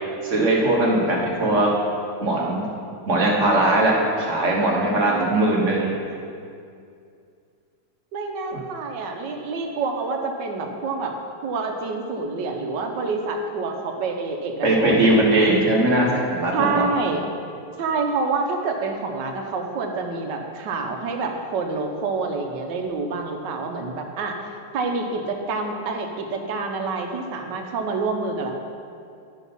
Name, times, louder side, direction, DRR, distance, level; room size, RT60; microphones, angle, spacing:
voice 1, 0.2-1.7 2.2-2.6 3.1-5.9 14.6-16.9, right 1 dB, 45° right, -2 dB, 1.6 m, -20 dB
voice 2, 5.0-5.6 8.1-11.2 11.4-15.4 16.5-17.2 17.8-24.4 24.7-28.5, right 4 dB, 70° right, 4 dB, 1.5 m, -27 dB
10.5 x 6.1 x 5.4 m, 2.4 s
omnidirectional pair, 2.0 m